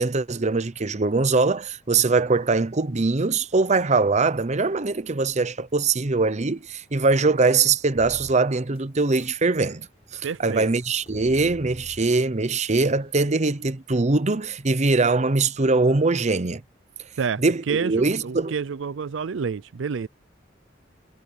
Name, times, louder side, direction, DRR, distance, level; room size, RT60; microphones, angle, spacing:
voice 1, 0.0-9.9 10.1-16.6 17.4-18.6, right 3 dB, 40° right, 0.8 m, -22 dB
sound 1, 7.9-9.3 9.7-13.0, equal, 35° left, 7.8 m, -47 dB
voice 2, 10.2-10.7 17.2-20.1, right 6 dB, 80° right, 0.5 m, -28 dB
head